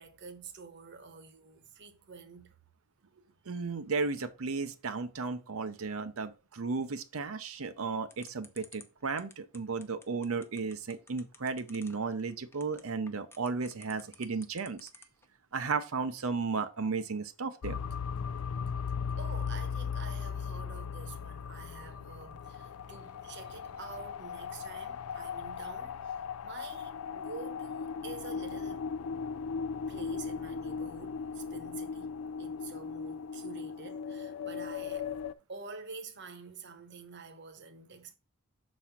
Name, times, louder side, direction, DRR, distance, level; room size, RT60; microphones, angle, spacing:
voice 1, 0.0-2.5 19.1-28.8 29.9-32.1 32.4-35.1 35.5-38.1, right 4 dB, 50° right, 1.1 m, -48 dB
voice 2, 3.5-14.9 15.5-17.8, right 4 dB, 65° right, 0.6 m, -34 dB
sound 1, 8.1-15.2, left 3 dB, 10° left, 0.6 m, -53 dB
sound 2, 17.6-35.3, left 6 dB, 75° left, 0.4 m, -38 dB
6.1 x 4.2 x 5.8 m
head